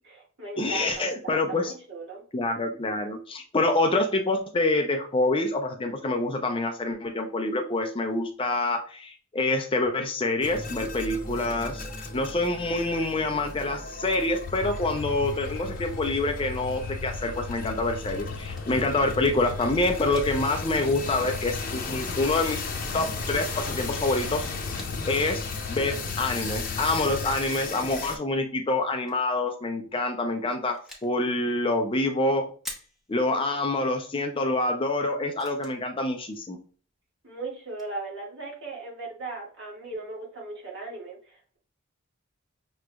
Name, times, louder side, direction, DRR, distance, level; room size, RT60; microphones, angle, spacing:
voice 1, 0.0-2.2 37.2-41.6, right 3 dB, 55° right, -2 dB, 1.8 m, -38 dB
voice 2, 0.6-1.7 2.3-11.8 12.1-22.6 22.9-24.5 25.1-25.4 25.7-32.5 33.1-36.6, left 2 dB, 25° left, 5 dB, 0.5 m, -26 dB
sound 1, 10.4-28.2, left 3 dB, 45° left, 1.0 m, -36 dB
sound 2, 14.4-27.4, left 4 dB, 75° left, 0.4 m, -37 dB
sound 3, 18.5-18.8 19.7-20.4 20.7-20.8 21.9-22.0 22.9-23.1 24.5-25.1 26.3-27.0 28.8-29.3 30.3-31.2 32.6-33.2 34.4-34.5 34.9-35.0 35.4-36.4 37.4-37.5 37.7-38.0, left 1 dB, ahead, 0.9 m, -46 dB
6.0 x 3.1 x 2.3 m, 0.40 s
head